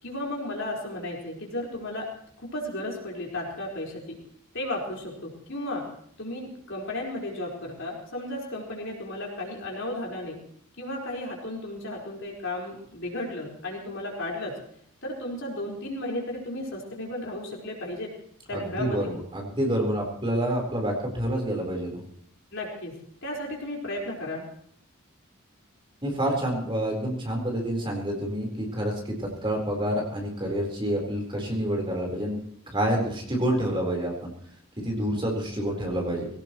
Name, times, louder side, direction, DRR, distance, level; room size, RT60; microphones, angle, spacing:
voice 1, 0.0-2.1 2.4-4.2 4.5-5.9 6.2-10.4 10.8-14.6 15.0-18.1 18.5-19.1 22.5-24.5, left 1 dB, 60° left, -2 dB, 4.6 m, -34 dB
voice 2, 18.5-21.9 26.0-28.9 29.2-32.4 32.7-34.3 34.8-36.3, right 1 dB, 25° right, 0 dB, 4.0 m, -28 dB
20.5 x 17.5 x 3.1 m, 0.64 s
head